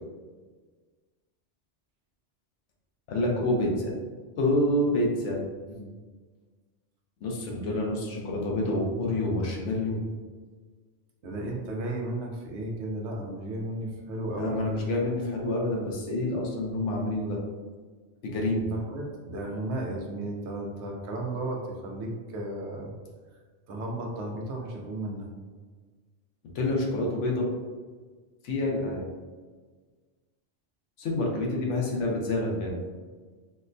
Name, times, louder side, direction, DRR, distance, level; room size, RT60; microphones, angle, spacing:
voice 1, 3.1-3.9 4.4-5.4 5.7-5.9 7.2-10.0 14.4-17.4 18.2-18.7 26.5-27.5 28.4-29.0 31.0-32.8, left 1 dB, 80° left, -1 dB, 1.0 m, -27 dB
voice 2, 11.2-14.5 18.7-22.9 23.7-25.3, right 1 dB, 75° right, 0 dB, 0.9 m, -34 dB
4.3 x 2.1 x 2.5 m, 1.4 s
omnidirectional pair, 1.2 m